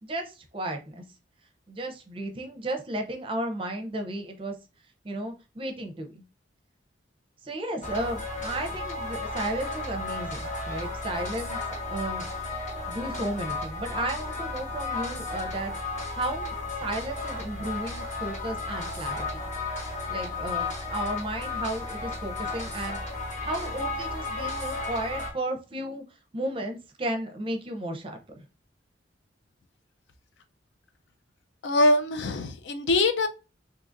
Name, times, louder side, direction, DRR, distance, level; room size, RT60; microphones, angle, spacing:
voice 1, 0.0-1.0 1.7-4.6 5.0-6.2 7.4-12.3 12.9-15.7 16.1-16.5 16.8-19.4 20.1-23.0 23.4-26.0 26.3-28.5, right 1 dB, 30° right, 0.5 m, -34 dB
sound 1, 7.8-25.3, left 3 dB, 40° left, 1.0 m, -34 dB
voice 2, 31.6-33.3, left 2 dB, 70° left, 0.5 m, -23 dB
3.7 x 2.8 x 2.5 m
head